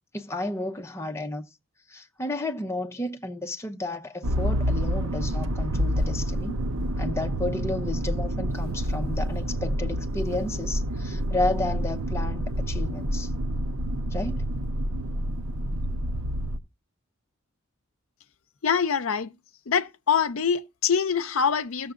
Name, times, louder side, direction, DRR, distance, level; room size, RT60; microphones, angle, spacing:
voice 1, 0.1-1.4 1.9-6.6 7.0-13.3 14.1-14.4, left 2 dB, 15° left, 0.8 m, -32 dB
Motor vehicle (road), 4.2-16.6, equal, 85° right, 0.7 m, -28 dB
voice 2, 18.6-19.3 19.7-21.9, left 6 dB, 80° left, 0.6 m, -24 dB
17.0 x 6.9 x 2.5 m
head